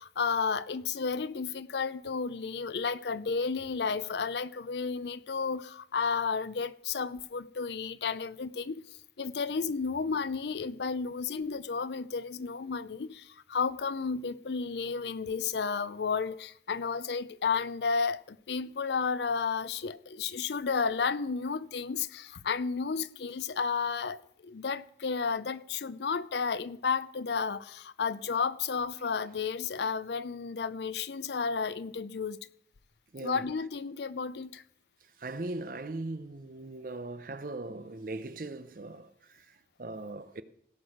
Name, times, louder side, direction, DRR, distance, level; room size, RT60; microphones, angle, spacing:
voice 1, 0.0-8.9 9.2-32.4 33.2-34.6, left 5 dB, 75° left, 0.5 m, -32 dB
voice 2, 33.1-33.4 35.0-40.4, right 2 dB, 50° right, 0.7 m, -40 dB
17.0 x 6.2 x 5.0 m
head